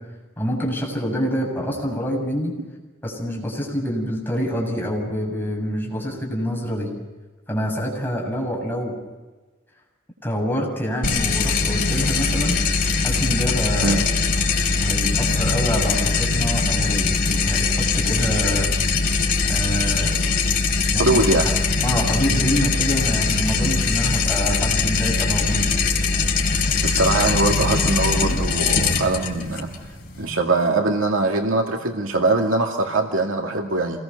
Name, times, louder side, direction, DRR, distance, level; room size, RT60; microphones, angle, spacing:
voice 1, 0.4-2.5 3.0-6.9 7.5-9.0 10.2-12.6 13.0-14.0 14.8-18.7 19.5-20.3 20.9-21.2 21.4-21.5 21.8-25.8, equal, 10° left, -1 dB, 7.3 m, -26 dB
sound 1, 11.0-30.3, left 4 dB, 45° left, 4.2 m, -21 dB
voice 2, 21.0-21.5 26.8-29.7 30.2-34.0, right 2 dB, 90° right, 2 dB, 2.4 m, -22 dB
28.0 x 20.5 x 6.9 m, 1.3 s
head